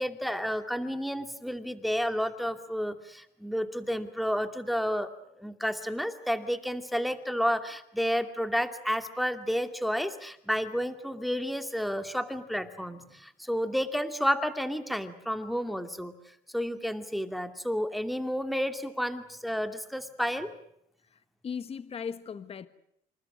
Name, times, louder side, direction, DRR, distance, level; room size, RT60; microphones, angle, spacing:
voice 1, 0.0-5.1 5.4-16.1 16.5-20.5, equal, ahead, 2.5 m, -31 dB
voice 2, 21.1-22.7, left 6 dB, 35° left, 1.4 m, -38 dB
27.5 x 27.5 x 6.3 m
cardioid pair, 110°, 17 cm